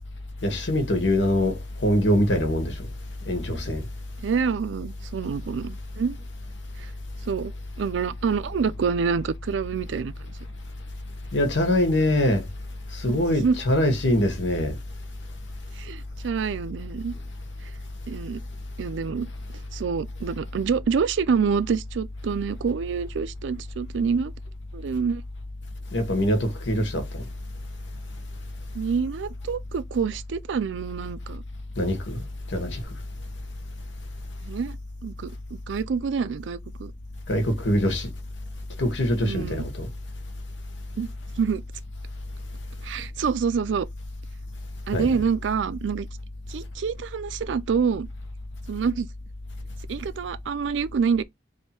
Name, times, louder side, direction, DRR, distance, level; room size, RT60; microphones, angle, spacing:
voice 1, 0.4-2.8 3.3-3.8 11.3-12.4 12.9-14.7 25.9-27.2 31.8-32.2 32.5-32.8 37.3-38.1 38.8-39.9 44.9-45.2, left 1 dB, 85° left, 1.2 m, -23 dB
voice 2, 4.2-6.2 6.8-6.9 7.3-7.5 7.8-10.4 13.1-13.6 15.8-17.1 18.1-18.4 18.8-19.3 19.7-24.3 24.7-25.2 28.7-31.4 34.4-34.8 35.0-36.9 39.2-39.6 41.0-41.1 41.4-41.6 42.8-43.9 44.9-46.1 46.5-48.1 48.7-49.1 49.9-51.2, right 6 dB, 80° right, 0.4 m, -27 dB
3.2 x 2.7 x 4.2 m
head